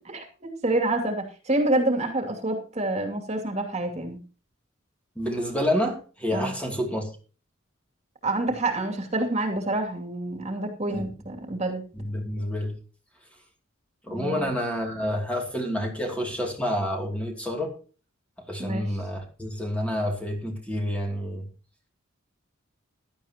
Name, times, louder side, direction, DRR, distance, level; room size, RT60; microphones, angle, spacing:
voice 1, 0.0-4.2 6.3-6.5 8.2-11.8 14.1-14.5 18.6-18.9, right 2 dB, 30° right, 2.6 m, -27 dB
voice 2, 5.2-7.1 10.9-11.0 11.9-12.8 14.0-17.7 18.4-21.5, equal, 5° left, 2.7 m, -29 dB
16.0 x 12.0 x 2.9 m
head